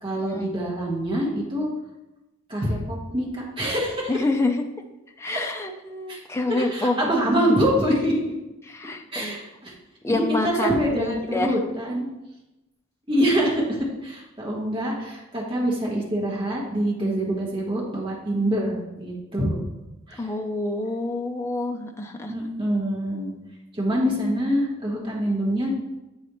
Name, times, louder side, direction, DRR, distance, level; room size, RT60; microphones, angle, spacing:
voice 1, 0.0-1.7 2.5-4.1 6.1-6.2 6.5-8.2 9.1-9.7 10.0-12.1 13.1-19.7 20.1-20.2 22.3-23.3 23.7-25.7, equal, 25° right, -3 dB, 1.2 m, -25 dB
voice 2, 4.1-4.6 5.2-7.0 8.6-9.4 10.0-11.6 20.2-22.3, left 2 dB, 15° left, 4 dB, 0.4 m, -27 dB
7.9 x 4.0 x 3.0 m, 0.98 s
head